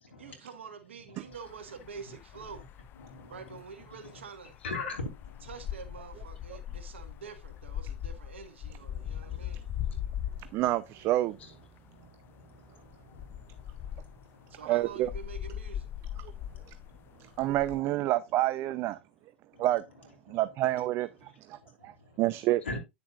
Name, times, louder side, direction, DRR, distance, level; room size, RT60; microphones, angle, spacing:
voice 1, 0.2-2.6 3.3-4.5 5.4-9.6 14.5-15.9, right 6 dB, 80° right, 1.5 m, -46 dB
sound 1, 1.3-10.8 11.1-11.2 11.6-12.0 12.2-12.4 12.9-17.8, left 10 dB, 35° left, 0.5 m, -40 dB
voice 2, 3.0-3.6 4.0-4.2 4.6-5.5 8.9-9.4 9.8-10.0 10.2-10.6 11.4-11.5 11.9-14.5 16.4-17.5 19.5-19.7 20.3-20.4 21.2-21.3 21.6-22.2 22.6-22.8, left 3 dB, 80° left, 2.9 m, -43 dB
voice 3, 10.5-11.4 14.7-15.1 16.2-16.3 17.4-19.0 19.6-19.8 20.3-22.6, right 15 dB, 40° right, 0.5 m, -28 dB
10.0 x 6.8 x 2.4 m
hypercardioid pair, 100°, 6 cm